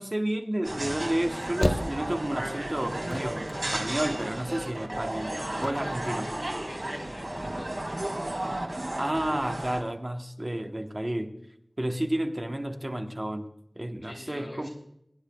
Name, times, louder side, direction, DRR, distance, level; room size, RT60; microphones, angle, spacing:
voice 1, 0.0-5.4 5.6-6.3 9.0-11.3 11.8-13.5 13.7-14.7, right 1 dB, 35° right, 4 dB, 1.1 m, -31 dB
sound 1, 0.6-9.8, right 1 dB, 55° right, 2.1 m, -34 dB
sound 2, 1.1-2.5 2.8-4.4 4.6-4.7 4.9-5.0 5.5-6.0, left 1 dB, 30° left, 0.8 m, -32 dB
voice 2, 5.3-8.2 14.0-14.7, left 1 dB, 90° left, -2 dB, 5.0 m, -44 dB
23.0 x 10.0 x 2.3 m, 0.78 s
wide cardioid pair, 45°, 0 cm